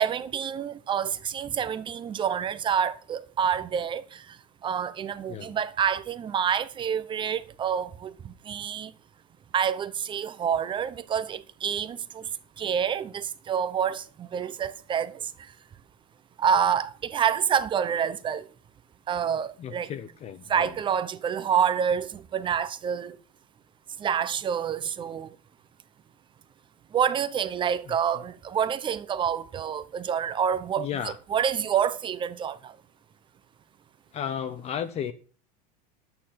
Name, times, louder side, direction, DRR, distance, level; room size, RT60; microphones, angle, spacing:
voice 1, 0.0-4.2 4.6-8.9 9.5-12.2 12.6-15.2 16.4-18.4 19.1-19.9 20.5-23.1 24.0-25.3 26.9-30.9 31.3-32.7, right 8 dB, 25° right, 0.9 m, -27 dB
voice 2, 19.6-20.7 27.9-28.0 30.8-31.2 34.1-35.1, left 9 dB, 30° left, 0.9 m, -34 dB
11.0 x 9.1 x 5.8 m
supercardioid pair, 145°, 20 cm